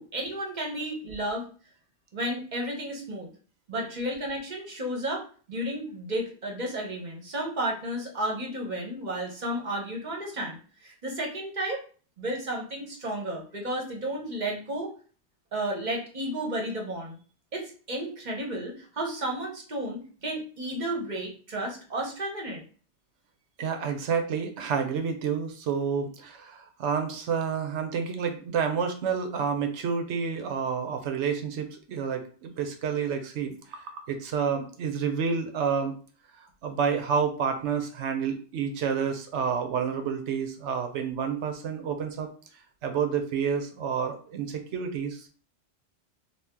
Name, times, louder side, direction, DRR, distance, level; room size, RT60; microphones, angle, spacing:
voice 1, 0.0-1.5 2.1-3.3 3.7-5.2 5.5-11.8 12.2-14.9 15.5-17.2 17.5-22.6, right 1 dB, 45° right, 0 dB, 0.9 m, -32 dB
voice 2, 23.6-35.9 36.6-42.3 42.8-45.3, right 6 dB, 80° right, 6 dB, 1.0 m, -29 dB
2.8 x 2.4 x 3.5 m, 0.40 s
omnidirectional pair, 1.2 m